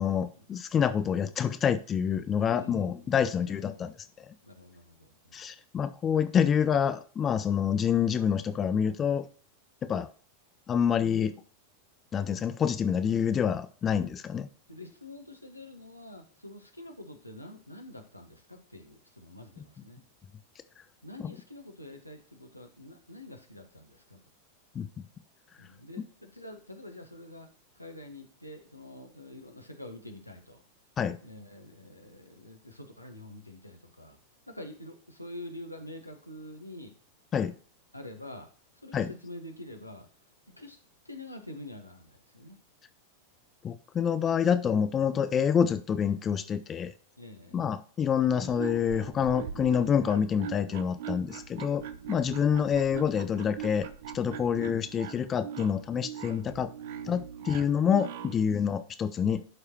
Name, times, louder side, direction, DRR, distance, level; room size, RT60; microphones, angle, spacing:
voice 1, 0.0-4.3 5.3-9.3 9.8-10.1 10.7-11.3 12.1-14.5 24.7-24.9 31.0-31.2 37.3-37.5 38.9-39.1 43.6-46.9 47.5-53.9 54.1-56.7 57.1-59.4, left 7 dB, 25° left, 11 dB, 0.5 m, -27 dB
voice 2, 2.5-3.0 3.4-3.9 4.4-5.4 14.7-20.0 21.0-24.2 25.6-27.5 27.8-30.6 31.2-34.2 34.5-36.9 37.3-37.4 37.9-38.5 38.8-40.1 40.6-40.8 41.0-42.6 47.2-47.6 51.0-51.2 58.3-58.5, left 1 dB, 85° left, 4 dB, 1.4 m, -46 dB
sound 1, 48.3-58.4, right 9 dB, 55° right, 0.6 m, -41 dB
11.5 x 4.9 x 2.9 m, 0.41 s
figure-of-eight pair, 90°, 0 cm